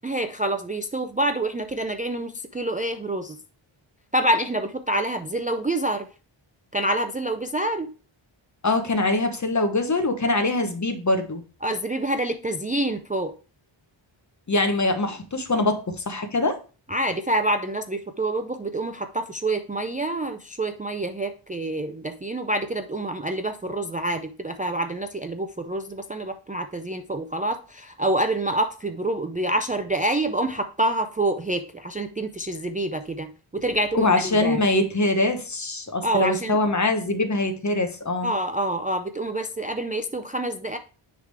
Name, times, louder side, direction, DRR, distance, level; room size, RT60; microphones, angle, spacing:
voice 1, 0.0-3.4 4.1-6.1 6.7-7.9 11.6-13.3 16.9-34.6 36.0-36.6 38.2-40.8, right 1 dB, 20° right, 6 dB, 0.4 m, -27 dB
voice 2, 8.6-11.4 14.5-16.6 33.9-38.3, left 2 dB, 35° left, 7 dB, 1.1 m, -23 dB
9.5 x 3.7 x 3.4 m, 0.36 s
wide cardioid pair, 115°, 48 cm